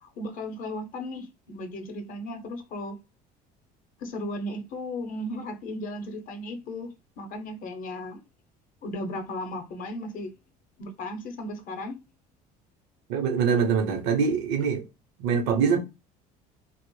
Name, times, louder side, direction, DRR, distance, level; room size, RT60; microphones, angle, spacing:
voice 1, 0.0-3.0 4.0-6.9 7.2-8.2 8.8-10.3 10.8-11.9, left 1 dB, 50° left, 0.7 m, -35 dB
voice 2, 13.1-14.8 15.2-15.8, right 6 dB, 80° right, 0.7 m, -24 dB
2.0 x 2.0 x 3.0 m
supercardioid pair, 100°, 18 cm